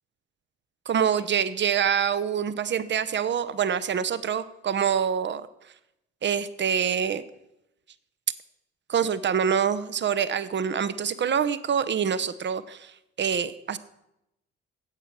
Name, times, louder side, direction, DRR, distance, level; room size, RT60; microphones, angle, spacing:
voice 1, 0.9-5.4 6.2-7.2 8.9-12.9 13.2-13.8, right 8 dB, 35° right, 15 dB, 0.8 m, -25 dB
12.5 x 8.4 x 4.5 m, 0.84 s
figure-of-eight pair, 45°, 34 cm